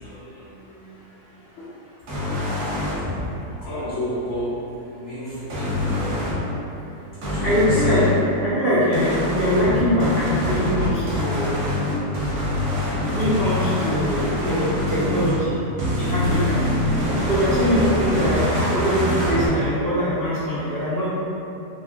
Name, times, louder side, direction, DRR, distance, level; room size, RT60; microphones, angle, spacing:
voice 1, 0.0-1.7 3.6-4.6 4.9-6.2 7.2-8.1 16.2-16.3, equal, 80° left, -11 dB, 0.6 m, -32 dB
sound 1, 2.1-2.9 5.5-6.4 7.2-8.1 8.9-15.4 15.8-19.5, left 1 dB, 60° right, 0.8 m, -24 dB
voice 2, 7.4-8.0 8.4-11.5 13.1-15.6 16.0-16.6 17.2-21.1, equal, 75° right, -12 dB, 0.5 m, -22 dB
2.8 x 2.3 x 2.4 m, 2.8 s
omnidirectional pair, 1.7 m